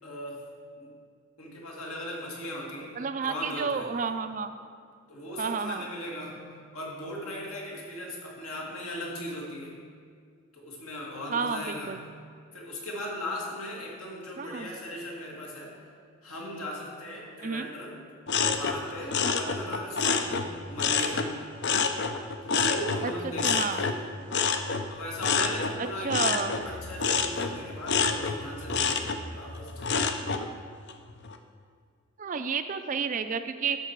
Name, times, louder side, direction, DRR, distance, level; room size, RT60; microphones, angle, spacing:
voice 1, 0.0-0.4 0.8-1.0 1.4-2.9 3.2-3.9 5.1-9.7 10.5-12.0 12.5-15.7 16.2-18.0 18.5-21.3 22.4-24.0 24.9-30.2, left 1 dB, 75° left, -3 dB, 2.1 m, -38 dB
voice 2, 3.0-4.5 5.4-5.8 11.3-12.0 14.4-14.7 17.4-17.7 23.0-23.1 23.4-23.8 26.0-26.6 32.2-33.8, right 5 dB, 35° right, 9 dB, 0.3 m, -30 dB
sound 1, 18.3-21.3 21.6-30.5 30.9-31.4, left 5 dB, 50° left, 0.5 m, -28 dB
11.5 x 6.6 x 4.6 m, 2.1 s
head